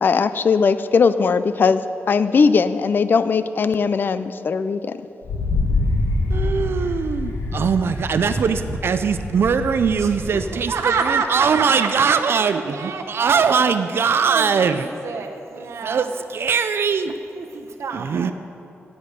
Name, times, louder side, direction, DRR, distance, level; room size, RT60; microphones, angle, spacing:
voice 1, 0.0-5.0, left 5 dB, 45° left, 13 dB, 0.4 m, -19 dB
Wind, 5.2-10.7, left 2 dB, 70° left, 1.5 m, -25 dB
voice 2, 6.3-14.9 15.8-17.2 17.9-18.3, right 6 dB, 55° right, 10 dB, 0.4 m, -21 dB
voice 3, 10.7-13.4 14.3-16.1 17.3-18.3, right 5 dB, 75° right, 3 dB, 1.1 m, -27 dB
13.5 x 9.7 x 5.2 m, 2.8 s
wide cardioid pair, 175°, 5 cm